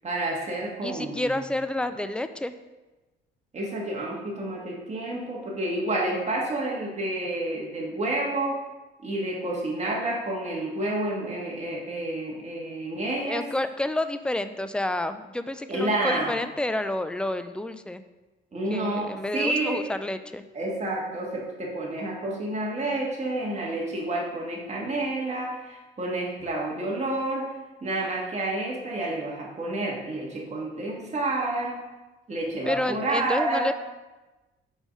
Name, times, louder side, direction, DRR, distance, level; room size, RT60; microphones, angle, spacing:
voice 1, 0.0-1.4 3.5-8.6 9.0-13.4 15.7-16.3 18.5-19.8 20.5-27.5 27.8-31.8 32.3-33.7, right 2 dB, 35° right, -3 dB, 2.0 m, -29 dB
voice 2, 0.8-2.5 13.2-18.0 18.7-20.4 32.7-33.7, left 1 dB, 5° left, 10 dB, 0.4 m, -29 dB
5.4 x 4.8 x 5.4 m, 1.1 s
cardioid pair, 90°, 20 cm